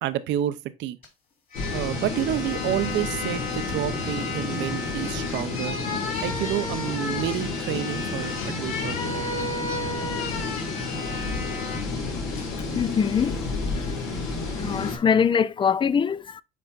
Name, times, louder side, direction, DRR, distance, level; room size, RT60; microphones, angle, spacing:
voice 1, 0.0-1.0 1.7-5.8 6.2-9.4, right 12 dB, 65° right, 0.7 m, -29 dB
sound 1, 1.0-1.1 1.5-11.9 12.3-12.5, left 3 dB, 40° left, 3.4 m, -34 dB
sound 2, 1.5-15.0, left 3 dB, 80° left, 2.1 m, -31 dB
voice 2, 12.7-13.3 14.6-16.4, left 7 dB, 25° left, 0.4 m, -22 dB
9.3 x 4.3 x 2.5 m
supercardioid pair, 95°, 20 cm